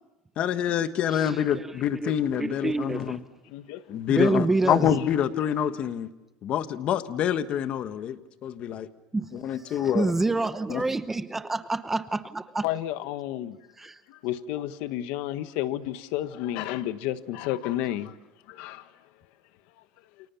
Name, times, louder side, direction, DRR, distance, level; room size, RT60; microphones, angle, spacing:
voice 1, 0.4-3.2 3.9-6.1 6.4-8.9 9.3-10.1 10.7-10.8, left 9 dB, 40° left, 1.5 m, -26 dB
voice 2, 2.4-3.2 4.1-4.9 9.1-9.3 9.7-12.7 13.8-14.0, right 2 dB, 10° right, 0.9 m, -27 dB
voice 3, 3.5-4.0 5.3-5.5 12.6-13.6 14.1-18.1 18.5-18.8, left 13 dB, 70° left, 1.5 m, -31 dB
29.0 x 28.5 x 7.2 m
cardioid pair, 145°, 3 cm